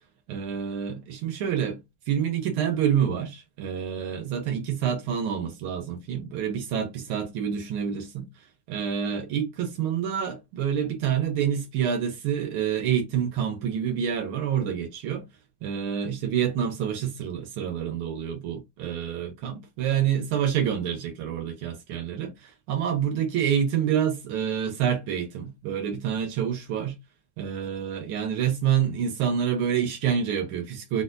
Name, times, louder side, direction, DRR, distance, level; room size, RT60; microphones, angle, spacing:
voice 1, 0.3-15.2 15.6-27.0 27.4-31.0, right 8 dB, 80° right, 1.7 m, -27 dB
4.5 x 2.2 x 2.5 m
omnidirectional pair, 2.3 m